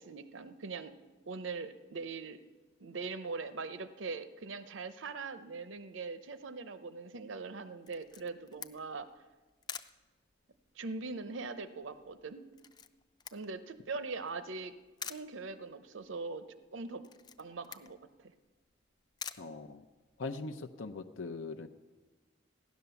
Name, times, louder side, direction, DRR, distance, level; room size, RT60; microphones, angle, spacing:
voice 1, 0.0-2.4 2.8-9.1 10.8-12.5 13.3-14.7 15.1-17.1 17.4-18.0, right 4 dB, 80° right, 12 dB, 0.7 m, -41 dB
Camera, 7.9-20.3, left 7 dB, 20° left, 0.4 m, -50 dB
voice 2, 19.4-19.8 20.2-21.7, left 3 dB, 85° left, 6 dB, 0.6 m, -41 dB
15.5 x 10.5 x 6.9 m, 1.3 s
head